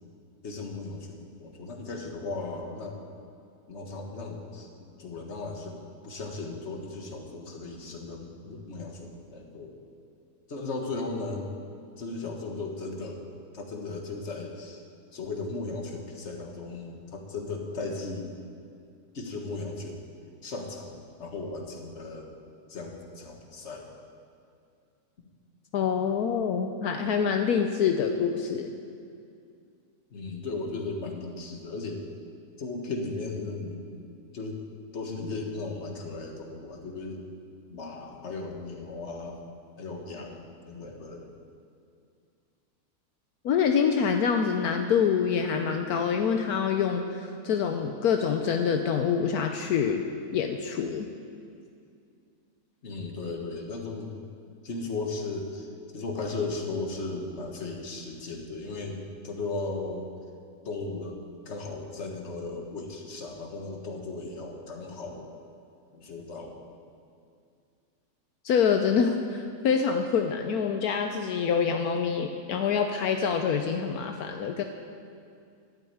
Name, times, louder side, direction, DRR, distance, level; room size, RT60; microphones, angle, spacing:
voice 1, 0.4-3.0 3.7-4.7 5.0-5.7 6.0-9.8 10.5-11.5 12.0-14.8 15.1-18.4 19.1-20.0 20.4-20.9 21.2-22.3 22.7-23.9 30.1-32.0 32.6-33.8 34.3-34.6 34.9-37.2 37.7-39.4 39.8-41.3 52.8-54.2 54.6-55.7 55.9-60.1 60.6-61.2 61.4-65.3 65.9-66.6, left 3 dB, 45° left, 2 dB, 1.8 m, -36 dB
voice 2, 25.7-28.7 43.4-50.0 50.3-51.1 68.4-74.6, left 6 dB, 75° left, 5 dB, 1.2 m, -26 dB
12.0 x 9.1 x 8.6 m, 2.3 s
omnidirectional pair, 1.6 m